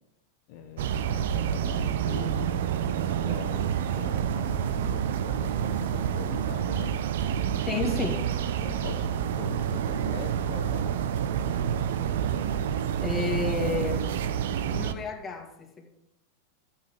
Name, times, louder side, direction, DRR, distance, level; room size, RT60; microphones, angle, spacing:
voice 1, 0.5-2.5 3.0-7.0 8.6-11.0, left 8 dB, 50° left, 1.2 m, -42 dB
sound 1, 0.8-14.9, right 9 dB, 55° right, 0.8 m, -28 dB
voice 2, 7.7-8.3 13.0-14.3 14.7-16.0, left 4 dB, 15° left, 2.3 m, -31 dB
15.0 x 7.4 x 6.8 m
figure-of-eight pair, 90°, 0 cm